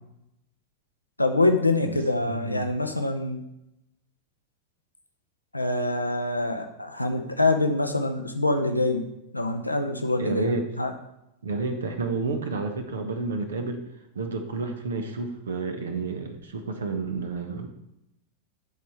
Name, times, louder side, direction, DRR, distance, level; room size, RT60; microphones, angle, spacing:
voice 1, 1.2-3.4 5.5-9.1 9.3-10.9, left 2 dB, 85° left, 6 dB, 0.7 m, -25 dB
voice 2, 2.3-2.8 10.2-10.6 11.4-13.8 14.1-17.7, right 3 dB, 65° right, 7 dB, 1.0 m, -30 dB
11.0 x 4.2 x 4.6 m, 0.86 s
figure-of-eight pair, 90°, 0 cm